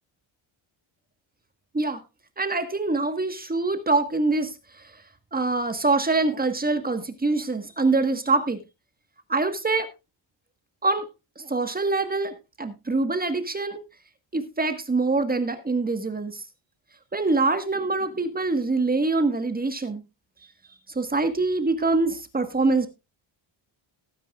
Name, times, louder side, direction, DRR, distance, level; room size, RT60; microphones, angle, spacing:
voice 1, 2.4-4.9 5.3-8.6 9.3-9.9 10.8-11.0 11.4-13.8 14.3-16.4 17.1-20.0 20.9-22.9, right 3 dB, 20° right, 8 dB, 1.5 m, -24 dB
18.5 x 9.1 x 2.4 m, 0.25 s
cardioid pair, 130°, 50 cm